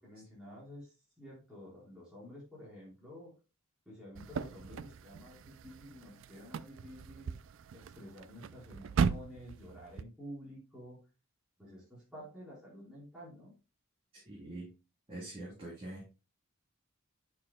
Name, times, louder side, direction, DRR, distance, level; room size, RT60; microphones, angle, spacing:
voice 1, 0.0-3.3 3.9-7.3 7.7-11.0 11.6-13.5, equal, 5° right, -8 dB, 4.2 m, -50 dB
Enter car with running engine, 4.1-10.0, right 6 dB, 60° right, 0.3 m, -38 dB
voice 2, 14.3-14.7 15.1-16.1, right 1 dB, 25° right, -7 dB, 3.2 m, -44 dB
9.6 x 6.4 x 2.2 m, 0.30 s
head